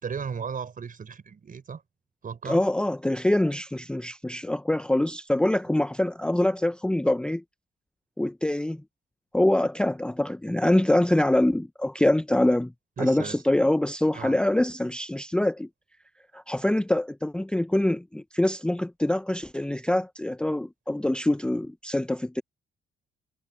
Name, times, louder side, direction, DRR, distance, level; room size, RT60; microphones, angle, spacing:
voice 1, 0.0-1.8 2.2-2.6 13.0-13.4 14.1-14.4, right 6 dB, 45° right, 5.1 m, -35 dB
voice 2, 2.4-7.4 8.2-8.8 9.3-12.7 13.0-15.7 16.3-22.4, left 1 dB, 5° left, 0.6 m, -24 dB
cardioid pair, 90°, 20 cm